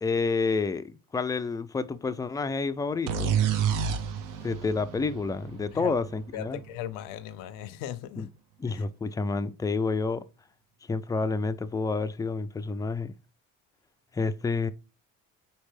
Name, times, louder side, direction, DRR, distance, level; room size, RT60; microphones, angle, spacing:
voice 1, 0.0-3.4 4.4-6.6 8.2-8.3 8.6-10.2 10.9-13.1 14.1-14.7, left 4 dB, 10° left, 0.3 m, -29 dB
sound 1, 3.1-6.7, right 8 dB, 65° right, 0.7 m, -29 dB
voice 2, 6.3-8.3 8.7-8.8, left 11 dB, 75° left, 0.5 m, -38 dB
4.3 x 3.2 x 3.2 m
cardioid pair, 95°, 33 cm